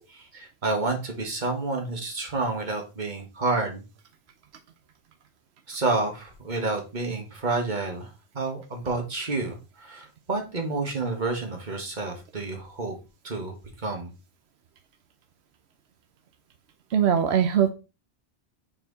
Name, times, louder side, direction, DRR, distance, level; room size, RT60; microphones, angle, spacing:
voice 1, 0.1-3.9 5.7-12.9 13.2-14.1, right 3 dB, 45° right, 2 dB, 1.7 m, -29 dB
voice 2, 16.9-17.7, right 8 dB, 90° right, 7 dB, 1.0 m, -21 dB
5.8 x 4.5 x 4.0 m, 0.29 s
omnidirectional pair, 1.1 m